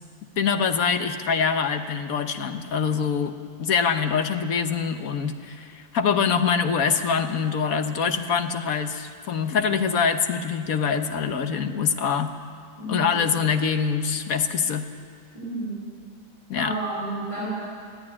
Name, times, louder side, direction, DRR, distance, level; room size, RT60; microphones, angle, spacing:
voice 1, 0.4-3.3 3.6-12.3 12.9-14.9 16.5-16.7, left 6 dB, 55° left, 8 dB, 1.4 m, -24 dB
voice 2, 12.8-13.1 15.3-15.8 16.5-17.5, right 2 dB, 75° right, -7 dB, 6.0 m, -31 dB
21.0 x 13.5 x 9.9 m, 2.1 s
omnidirectional pair, 1.9 m